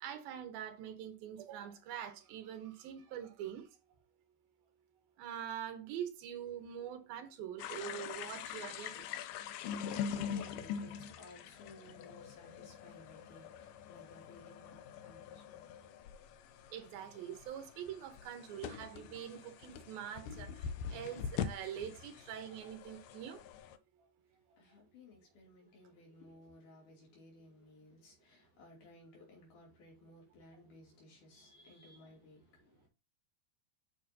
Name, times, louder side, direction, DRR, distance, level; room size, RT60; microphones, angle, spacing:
voice 1, 0.0-3.7 5.2-9.1 16.7-23.5 24.0-24.1 24.5-24.6, right 9 dB, 75° right, 2.8 m, -44 dB
sound 1, 7.6-23.8, left 8 dB, 80° left, 1.9 m, -44 dB
voice 2, 9.4-16.5 24.3-32.9, left 2 dB, 55° left, 4.2 m, -59 dB
9.3 x 5.9 x 2.8 m
omnidirectional pair, 4.4 m